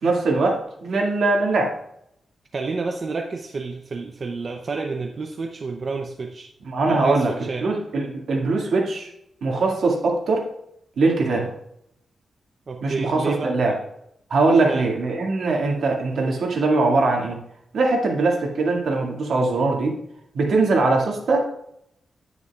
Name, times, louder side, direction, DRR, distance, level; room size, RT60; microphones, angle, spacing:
voice 1, 0.0-1.7 6.7-7.3 7.6-9.1 9.4-10.5 11.0-11.5 12.8-13.8 14.3-17.4 17.7-20.0 20.3-21.4, right 3 dB, 70° right, 0 dB, 2.0 m, -21 dB
voice 2, 2.5-6.5 6.9-7.7 11.2-11.5 12.7-13.6 14.6-14.9, right 4 dB, 40° right, 3 dB, 0.6 m, -29 dB
9.6 x 9.6 x 2.4 m, 0.76 s
wide cardioid pair, 145°, 0 cm